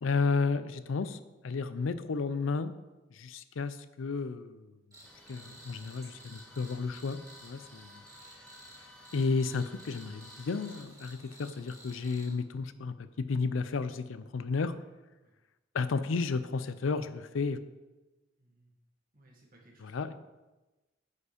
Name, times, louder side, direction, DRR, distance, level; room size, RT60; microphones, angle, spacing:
voice 1, 0.0-2.7 3.1-4.7 5.3-8.0 9.1-14.7 15.7-17.6 19.8-20.1, left 4 dB, 90° left, 13 dB, 0.5 m, -32 dB
Cricket, 4.9-12.3, right 1 dB, 20° right, 1.9 m, -54 dB
sound 1, 5.0-10.8, left 2 dB, 5° left, 0.9 m, -56 dB
voice 2, 7.7-8.1 15.2-15.3 18.4-18.7 19.1-20.1, right 1 dB, 45° right, -1 dB, 1.8 m, -63 dB
8.4 x 5.0 x 5.0 m, 1.1 s
head